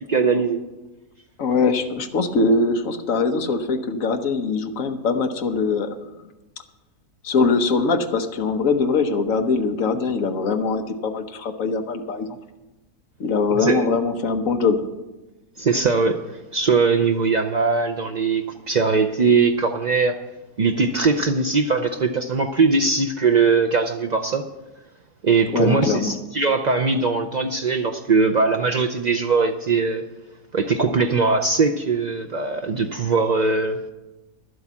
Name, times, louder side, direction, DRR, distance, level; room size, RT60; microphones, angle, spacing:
voice 1, 0.1-0.6 13.5-13.8 15.6-20.2 20.6-24.4 25.2-30.0 30.5-33.9, right 4 dB, 65° right, 4 dB, 0.4 m, -20 dB
voice 2, 1.4-5.9 7.2-12.4 13.2-14.8 25.5-26.1, left 4 dB, 60° left, 6 dB, 1.3 m, -22 dB
12.0 x 7.9 x 7.3 m, 1.1 s
omnidirectional pair, 1.6 m